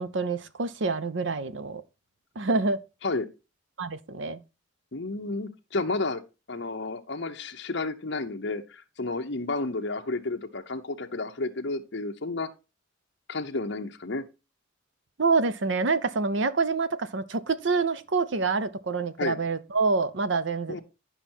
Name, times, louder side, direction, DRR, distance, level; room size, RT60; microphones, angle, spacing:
voice 1, 0.0-1.8 2.4-2.8 3.8-4.4 15.2-20.8, right 4 dB, 65° right, 0.7 m, -27 dB
voice 2, 4.9-6.2 6.5-12.5 13.3-14.2 19.2-19.4 20.7-20.8, left 3 dB, 60° left, 0.9 m, -31 dB
10.0 x 5.6 x 4.4 m
head